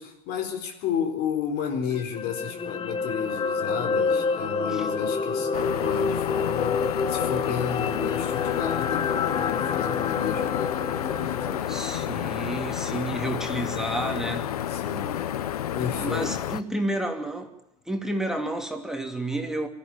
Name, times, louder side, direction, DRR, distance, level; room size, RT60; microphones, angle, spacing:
voice 1, 0.0-11.9 14.7-15.3 15.7-16.4, left 7 dB, 55° left, 4.2 m, -32 dB
sound 1, 1.9-14.2 14.6-14.7, left 5 dB, 25° left, 1.3 m, -29 dB
sound 2, 5.5-16.6, left 11 dB, 85° left, 0.9 m, -31 dB
voice 2, 11.7-14.6 16.0-17.5 17.9-19.7, right 1 dB, 5° right, 2.8 m, -30 dB
23.5 x 14.0 x 9.0 m
hypercardioid pair, 90°, 19 cm